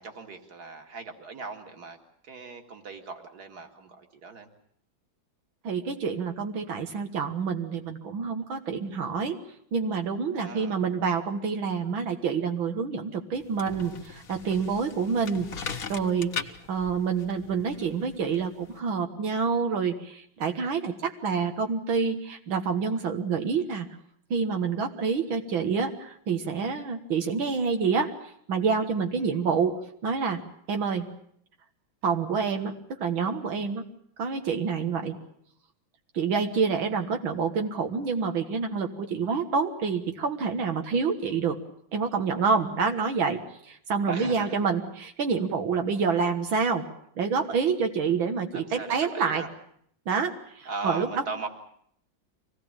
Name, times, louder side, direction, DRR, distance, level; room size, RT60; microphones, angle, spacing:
voice 1, 0.0-2.0 2.2-4.5 10.4-10.8 29.2-29.4 44.1-44.6 48.5-49.5 50.7-51.5, right 4 dB, 55° right, 5 dB, 2.8 m, -38 dB
voice 2, 5.6-9.4 9.7-23.9 24.3-29.8 30.0-30.4 30.7-31.1 32.0-33.8 34.2-35.2 36.1-41.6 41.9-46.8 47.2-49.4 50.1-51.2, right 5 dB, 90° right, 5 dB, 2.4 m, -27 dB
sound 1, 13.3-18.8, left 6 dB, 50° left, 1.5 m, -40 dB
25.0 x 18.0 x 8.9 m, 0.68 s
omnidirectional pair, 2.1 m